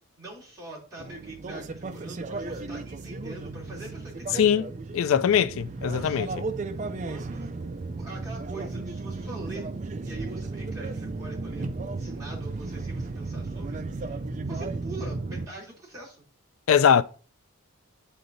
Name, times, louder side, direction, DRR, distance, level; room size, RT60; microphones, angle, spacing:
voice 1, 0.2-4.5 5.9-6.4 7.0-7.5 7.9-9.7 10.0-16.3, right 2 dB, 15° right, 3.0 m, -43 dB
sound 1, 1.0-15.5, right 3 dB, 35° right, 0.4 m, -34 dB
voice 2, 4.9-6.3 16.7-17.0, left 8 dB, 70° left, 0.4 m, -21 dB
10.0 x 3.9 x 2.6 m
head